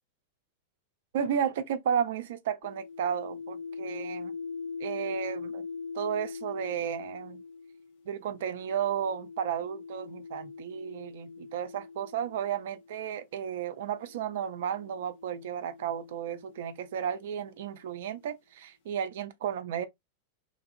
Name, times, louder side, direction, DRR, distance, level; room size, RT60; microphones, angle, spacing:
voice 1, 1.1-4.3 4.8-5.7 5.9-7.4 8.1-19.8, right 8 dB, 55° right, 0.4 m, -33 dB
sound 1, 2.6-13.0 13.9-17.6, left 5 dB, 50° left, 0.7 m, -43 dB
3.1 x 2.4 x 2.5 m
figure-of-eight pair, 90°, 0 cm